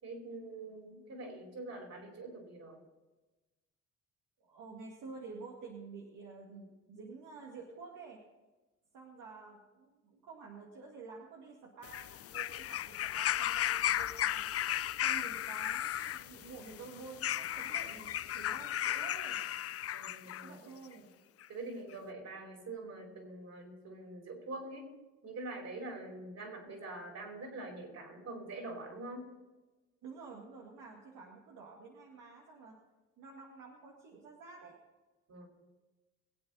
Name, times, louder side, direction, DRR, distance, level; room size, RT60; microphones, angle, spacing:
voice 1, 0.0-2.8 19.9-20.7 21.0-21.1 21.5-24.9 25.2-29.3 35.3-35.5, right 2 dB, 60° right, 1 dB, 4.7 m, -45 dB
voice 2, 4.4-8.2 8.9-19.4 20.4-21.1 30.0-32.8 33.2-34.8, right 4 dB, 80° right, -2 dB, 2.1 m, -50 dB
sound 1, 11.8-20.5 21.4-21.5, left 12 dB, 50° left, 0.5 m, -35 dB
22.5 x 8.6 x 4.2 m, 1.2 s
cardioid pair, 90°, 30 cm